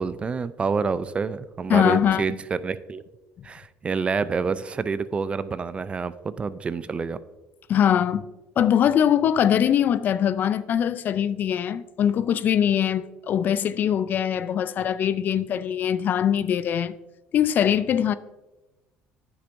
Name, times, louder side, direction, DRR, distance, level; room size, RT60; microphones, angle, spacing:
voice 1, 0.0-3.0 3.4-7.2, right 5 dB, 30° right, 0.4 m, -28 dB
voice 2, 1.7-2.2 7.7-8.2 8.6-16.9 17.3-18.1, left 9 dB, 50° left, 0.3 m, -22 dB
9.5 x 6.9 x 2.6 m
supercardioid pair, 90°, 4 cm